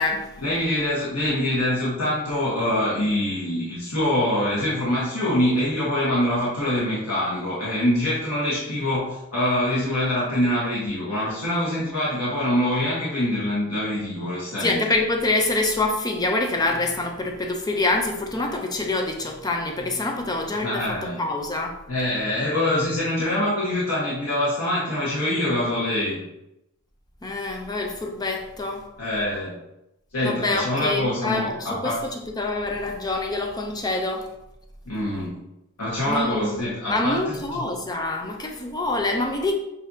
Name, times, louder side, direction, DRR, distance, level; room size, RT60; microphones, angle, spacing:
voice 1, 0.4-14.8 20.5-21.2 21.9-26.2 29.0-29.5 30.1-32.0 34.9-35.3 35.8-37.6, left 1 dB, 85° left, -8 dB, 1.3 m, -24 dB
voice 2, 14.6-20.8 21.2-21.8 27.2-28.8 30.2-31.9 32.4-34.2 36.1-36.6 36.9-39.5, left 2 dB, 20° left, 3 dB, 0.5 m, -25 dB
7.1 x 2.7 x 2.7 m, 0.87 s
head